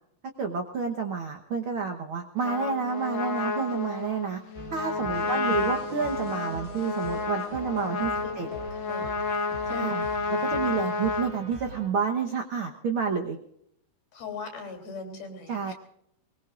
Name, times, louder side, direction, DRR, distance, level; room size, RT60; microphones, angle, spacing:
voice 1, 0.4-4.4 4.7-8.5 9.7-10.0 10.3-13.4 15.5-15.7, right 6 dB, 85° right, 3 dB, 1.1 m, -29 dB
Trumpet, 2.4-11.3, left 4 dB, 50° left, 1.4 m, -31 dB
sound 1, 4.5-11.9, right 3 dB, 30° right, 1.5 m, -44 dB
voice 2, 5.3-5.7 8.1-8.6 8.9-9.2 9.7-9.9 14.1-15.7, left 3 dB, 85° left, 4 dB, 4.9 m, -39 dB
22.5 x 21.0 x 2.5 m, 0.75 s
omnidirectional pair, 4.2 m